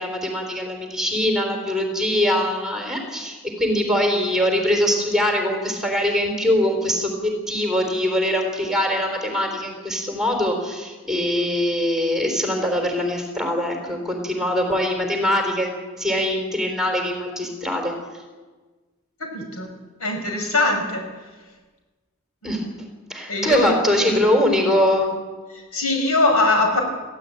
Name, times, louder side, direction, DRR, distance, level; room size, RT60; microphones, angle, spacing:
voice 1, 0.0-17.9 22.4-22.6 23.1-25.1, left 1 dB, ahead, 3 dB, 3.8 m, -22 dB
voice 2, 19.3-19.7 20.0-21.1 23.3-23.8 25.5-26.8, left 2 dB, 85° left, 3 dB, 5.9 m, -21 dB
21.5 x 15.5 x 8.9 m, 1.3 s
head